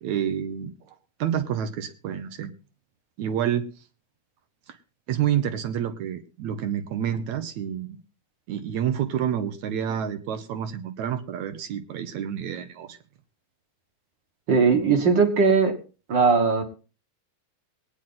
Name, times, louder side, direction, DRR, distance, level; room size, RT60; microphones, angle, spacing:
voice 1, 0.0-2.5 3.2-3.7 4.7-4.8 5.1-8.0 8.5-13.0, right 9 dB, 75° right, 8 dB, 2.3 m, -28 dB
voice 2, 14.5-15.7 16.1-16.6, right 5 dB, 45° right, 6 dB, 1.8 m, -19 dB
21.5 x 9.2 x 3.9 m, 0.35 s
omnidirectional pair, 3.4 m